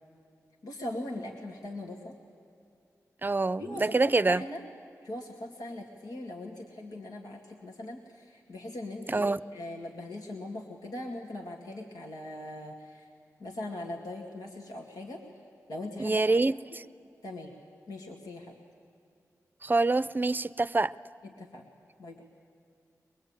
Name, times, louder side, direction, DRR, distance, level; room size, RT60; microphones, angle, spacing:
voice 1, 0.6-2.1 3.6-4.6 5.0-13.1 13.4-15.2 15.7-16.2 17.2-17.6 17.9-18.6 21.2-21.7 22.0-22.2, left 1 dB, 90° left, 2.3 m, -40 dB
voice 2, 3.2-4.4 9.1-9.4 16.0-16.8 19.6-20.9, right 3 dB, 30° right, 0.6 m, -26 dB
22.5 x 22.5 x 8.9 m
cardioid pair, 55°, 6 cm